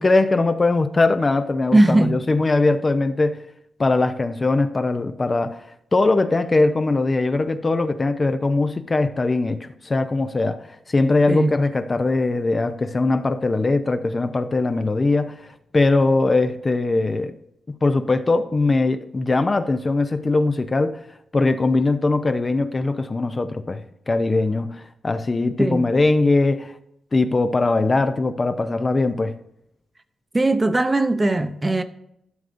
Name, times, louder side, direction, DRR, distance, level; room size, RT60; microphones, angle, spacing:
voice 1, 0.0-3.4 3.8-5.6 5.9-17.4 17.8-21.0 21.3-26.8 27.1-29.4, left 3 dB, 25° left, 0.5 m, -21 dB
voice 2, 1.7-2.2 11.3-11.5 25.6-25.8 30.3-31.8, right 2 dB, 20° right, 0.6 m, -19 dB
12.5 x 6.5 x 2.6 m
wide cardioid pair, 125°, 0 cm